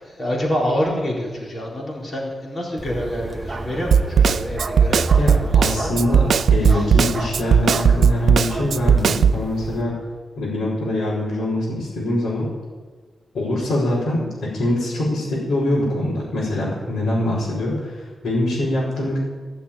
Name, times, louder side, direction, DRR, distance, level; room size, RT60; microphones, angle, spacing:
voice 1, 0.0-5.9 6.6-6.8, equal, 35° left, -3 dB, 4.2 m, -27 dB
Bark, 2.8-9.8, right 2 dB, 25° right, 1.0 m, -31 dB
Snare drum, 3.9-9.4, right 7 dB, 60° right, 0.4 m, -16 dB
voice 2, 5.2-10.0 10.4-12.5 13.3-19.2, left 1 dB, 90° left, -8 dB, 5.0 m, -23 dB
15.5 x 7.2 x 8.8 m, 1.5 s
wide cardioid pair, 165°, 0 cm